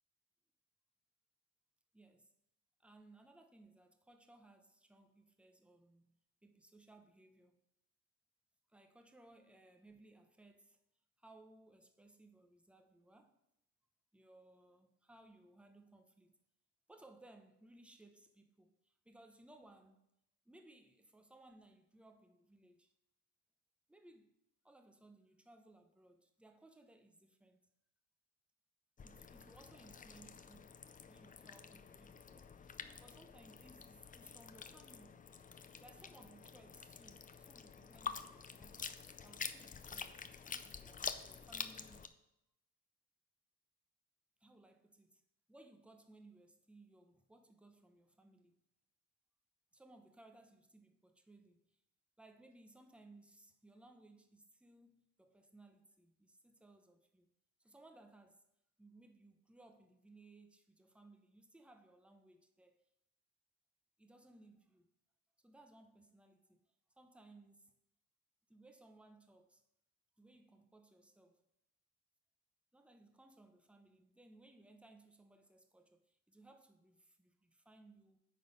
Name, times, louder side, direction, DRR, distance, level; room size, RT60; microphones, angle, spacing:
voice 1, 1.9-2.3 2.8-7.6 8.7-10.8 11.2-13.4 14.1-16.4 16.9-20.0 20.4-22.9 23.9-24.3 24.6-27.7 29.0-30.7 31.0-35.4 35.8-38.8 39.2-42.1 44.4-45.2 45.5-48.6 49.7-51.8 52.2-57.3 57.6-58.4 58.8-62.8 64.0-64.9 65.4-66.6 67.0-67.7 68.5-69.6 70.2-71.4 72.7-78.2, right 2 dB, 5° right, 0.8 m, -63 dB
sound 1, 29.0-42.1, left 6 dB, 25° left, 0.5 m, -48 dB
9.3 x 3.9 x 5.2 m
cardioid pair, 90°, 30 cm